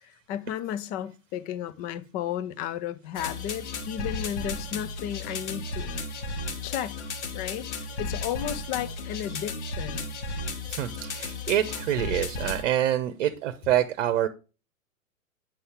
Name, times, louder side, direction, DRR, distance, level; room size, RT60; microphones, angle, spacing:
voice 1, 0.0-6.0 6.6-7.0 7.3-10.1, left 10 dB, 20° left, 0.5 m, -34 dB
sound 1, 3.2-12.6, left 3 dB, 55° left, 1.6 m, -34 dB
voice 2, 10.7-14.3, right 11 dB, 50° right, 0.9 m, -26 dB
9.0 x 5.5 x 3.4 m
figure-of-eight pair, 105°, 41 cm